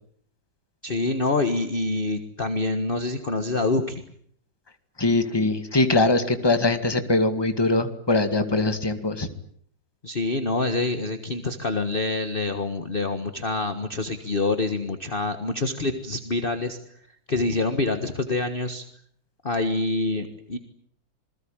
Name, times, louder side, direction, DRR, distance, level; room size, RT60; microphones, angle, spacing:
voice 1, 0.8-4.0 10.0-16.8 17.3-18.8 19.4-20.6, left 3 dB, 30° left, 7 dB, 1.7 m, -26 dB
voice 2, 5.0-9.3, left 2 dB, 15° left, 8 dB, 2.0 m, -22 dB
27.5 x 21.0 x 8.9 m, 0.64 s
omnidirectional pair, 2.0 m